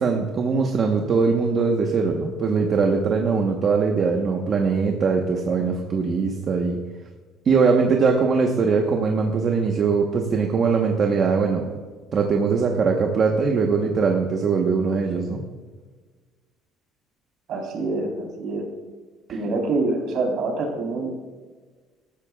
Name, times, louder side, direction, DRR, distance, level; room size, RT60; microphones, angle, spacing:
voice 1, 0.0-6.8 7.4-11.7 12.1-15.4, right 5 dB, 35° right, 2 dB, 1.1 m, -21 dB
voice 2, 17.5-18.6 19.3-21.2, right 3 dB, 50° right, 0 dB, 3.8 m, -26 dB
19.5 x 13.5 x 2.4 m, 1.4 s
cardioid pair, 170°, 0 cm